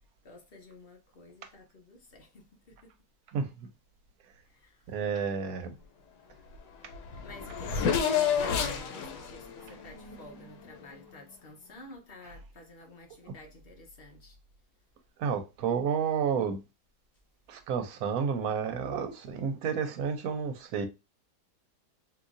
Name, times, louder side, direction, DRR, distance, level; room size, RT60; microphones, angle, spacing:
voice 1, 0.2-2.9 4.5-4.9 7.2-14.4, left 2 dB, 45° left, 0.9 m, -51 dB
voice 2, 3.3-3.7 4.9-5.7 15.2-16.6 17.5-20.9, right 6 dB, 70° right, 1.0 m, -31 dB
Race car auto racing / Accelerating revving vroom, 6.5-6.6 6.8-10.8, left 7 dB, 80° left, 1.2 m, -31 dB
3.8 x 2.7 x 2.4 m
omnidirectional pair, 1.7 m